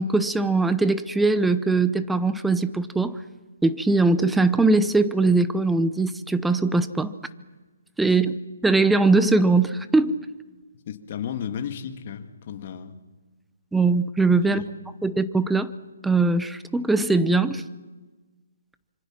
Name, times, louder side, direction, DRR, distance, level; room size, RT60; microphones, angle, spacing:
voice 1, 0.0-3.2 3.6-7.1 8.0-8.4 8.6-10.2 13.7-14.6 15.0-15.7 16.0-17.6, right 3 dB, 5° right, 13 dB, 0.7 m, -21 dB
voice 2, 10.9-13.0 14.4-14.7, left 8 dB, 40° left, 7 dB, 2.0 m, -34 dB
26.0 x 24.5 x 6.0 m, 1.3 s
hypercardioid pair, 155°, 0 cm